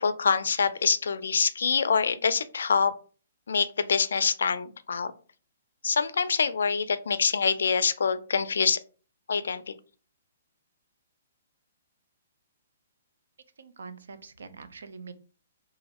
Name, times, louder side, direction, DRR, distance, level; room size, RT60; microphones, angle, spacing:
voice 1, 0.0-2.9 3.5-5.1 5.8-8.8 9.3-9.7, left 5 dB, 80° left, 13 dB, 0.3 m, -25 dB
voice 2, 13.6-15.1, right 4 dB, 80° right, 11 dB, 0.4 m, -44 dB
3.0 x 2.5 x 2.8 m, 0.38 s
hypercardioid pair, 175°, 0 cm